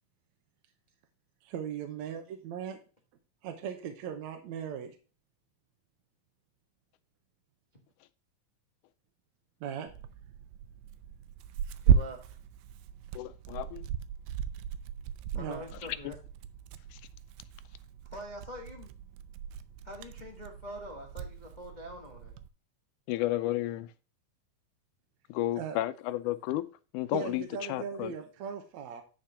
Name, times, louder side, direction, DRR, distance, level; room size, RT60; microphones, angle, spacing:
voice 1, 1.4-2.8 3.4-5.0 9.6-9.9 15.3-15.6 25.6-25.8 27.1-29.0, right 8 dB, 65° right, 2.1 m, -38 dB
Tearing, 9.9-22.5, right 8 dB, 90° right, 2.3 m, -35 dB
voice 2, 11.8-12.3 15.3-16.2 18.1-18.9 19.8-22.3, equal, 55° left, 0.4 m, -44 dB
voice 3, 13.1-13.8 16.9-17.0 23.1-23.9 25.3-26.7 26.9-28.1, left 15 dB, 80° left, 2.0 m, -32 dB
10.5 x 4.2 x 5.7 m
omnidirectional pair, 3.8 m